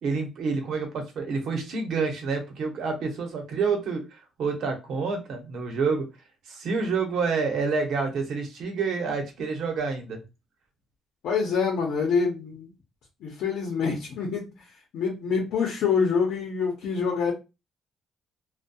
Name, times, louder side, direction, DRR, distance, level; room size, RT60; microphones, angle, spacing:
voice 1, 0.0-6.0 6.5-10.2, right 4 dB, 70° right, 3 dB, 0.8 m, -28 dB
voice 2, 11.2-12.7 13.2-14.5 14.9-17.3, left 5 dB, 80° left, 0 dB, 0.7 m, -26 dB
2.6 x 2.2 x 2.2 m, 0.26 s
cardioid pair, 105°, 0 cm